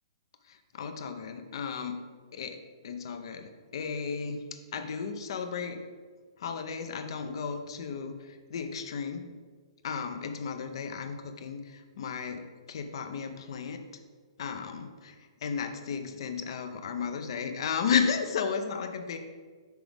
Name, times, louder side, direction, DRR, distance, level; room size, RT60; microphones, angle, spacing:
voice 1, 0.5-2.0 2.3-5.9 6.4-9.3 9.8-14.0 14.4-15.1 15.4-19.2, left 6 dB, 65° left, 7 dB, 0.6 m, -34 dB
6.1 x 4.8 x 3.4 m, 1.5 s
hypercardioid pair, 145°, 3 cm